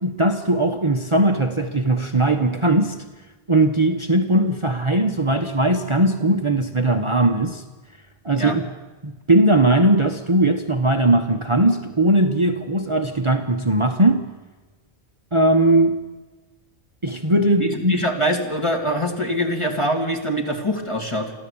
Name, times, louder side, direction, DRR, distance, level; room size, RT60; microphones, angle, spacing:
voice 1, 0.0-3.0 3.5-7.6 8.2-8.7 9.0-14.2 15.3-16.0 17.0-18.0, right 1 dB, 30° right, 5 dB, 1.2 m, -19 dB
voice 2, 17.6-21.3, equal, 25° left, 2 dB, 3.0 m, -24 dB
24.0 x 15.0 x 8.8 m, 1.2 s
omnidirectional pair, 1.1 m